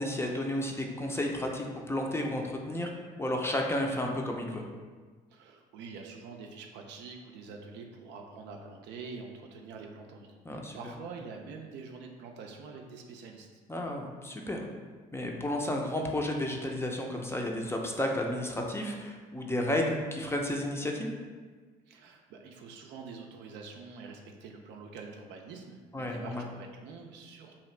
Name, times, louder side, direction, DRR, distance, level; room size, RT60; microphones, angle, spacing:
voice 1, 0.0-2.9 3.2-4.7 10.4-10.8 13.7-14.7 15.1-21.1 25.9-26.4, left 1 dB, 15° left, 1 dB, 0.5 m, -32 dB
voice 2, 5.3-13.5 21.9-27.6, right 4 dB, 70° right, 2 dB, 0.4 m, -46 dB
2.8 x 2.4 x 3.1 m, 1.4 s
supercardioid pair, 65°, 19 cm